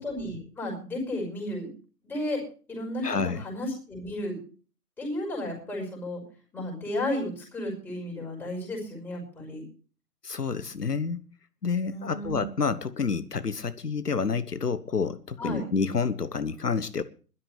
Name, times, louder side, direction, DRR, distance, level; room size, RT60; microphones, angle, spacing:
voice 1, 0.0-1.7 2.0-2.4 2.7-4.4 5.0-6.2 6.5-9.6 11.9-12.4 15.4-15.7, left 1 dB, 5° left, 5.6 m, -33 dB
voice 2, 3.0-3.4 10.2-11.2 11.6-17.0, left 5 dB, 75° left, 1.1 m, -29 dB
21.0 x 12.5 x 3.2 m
figure-of-eight pair, 140°, 48 cm